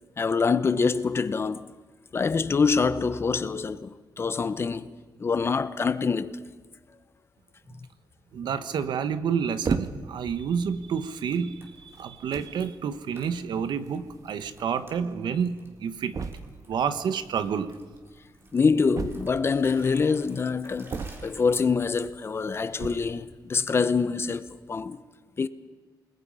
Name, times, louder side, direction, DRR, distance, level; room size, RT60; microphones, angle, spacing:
voice 1, 0.2-1.7 2.1-4.9 5.2-6.4 18.5-25.0 25.4-25.5, left 5 dB, 35° left, 0.9 m, -25 dB
voice 2, 8.3-15.5 15.8-16.2 16.7-17.8, right 7 dB, 85° right, 1.3 m, -29 dB
sound 1, 9.6-10.2 11.0-11.2 12.0-12.1 12.3-12.6 13.9-14.0 14.2-14.3 14.5-14.6 16.1-16.7 18.9-19.6 20.9-21.5 22.7-23.2, right 5 dB, 50° right, 1.3 m, -32 dB
sound 2, 10.2-22.3, right 1 dB, 30° right, 4.1 m, -54 dB
29.0 x 20.5 x 5.6 m
wide cardioid pair, 155°, 8 cm